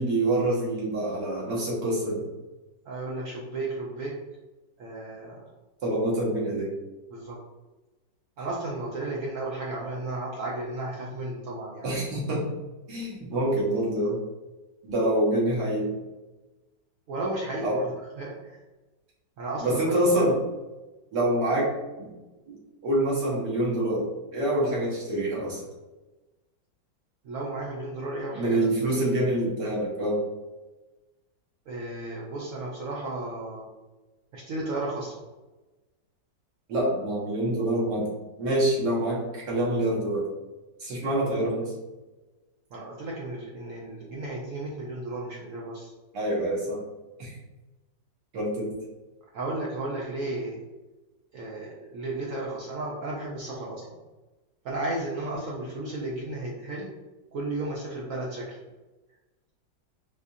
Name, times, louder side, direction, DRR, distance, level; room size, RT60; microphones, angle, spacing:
voice 1, 0.0-2.2 5.8-6.7 11.8-12.5 12.9-14.2 14.8-15.9 17.6-17.8 19.6-20.4 21.1-21.7 22.0-22.1 22.5-22.6 22.8-24.1 24.3-25.6 28.3-30.2 36.7-38.1 38.4-40.3 40.8-41.7 46.1-46.8 47.2-47.3 48.3-48.7, right 1 dB, 70° right, -5 dB, 1.6 m, -26 dB
voice 2, 2.9-4.1 4.8-5.4 7.1-7.4 8.4-11.9 17.1-17.9 18.2-18.6 19.4-20.2 27.2-28.9 31.7-33.7 34.3-35.2 42.7-45.9 49.3-50.6 51.3-54.0 54.6-56.9 57.3-58.6, right 2 dB, 85° right, -3 dB, 0.7 m, -34 dB
4.2 x 2.4 x 2.6 m, 1.1 s
omnidirectional pair, 2.0 m